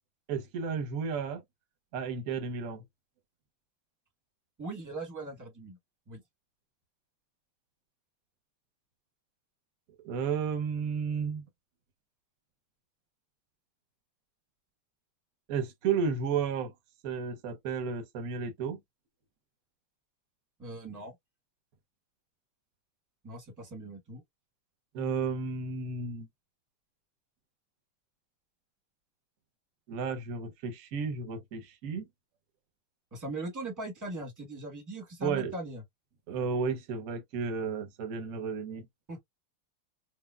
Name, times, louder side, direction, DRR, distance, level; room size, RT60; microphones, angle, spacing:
voice 1, 0.3-1.4 1.9-2.8 10.0-11.4 15.5-16.7 17.0-18.8 24.9-26.3 29.9-32.1 35.2-35.5 36.3-38.9, right 5 dB, 65° right, 0.9 m, -32 dB
voice 2, 4.6-5.8 6.1-6.2 20.6-21.1 23.2-24.2 33.1-35.8 39.1-39.2, right 2 dB, 15° right, 0.6 m, -40 dB
4.8 x 2.0 x 2.2 m
omnidirectional pair, 2.4 m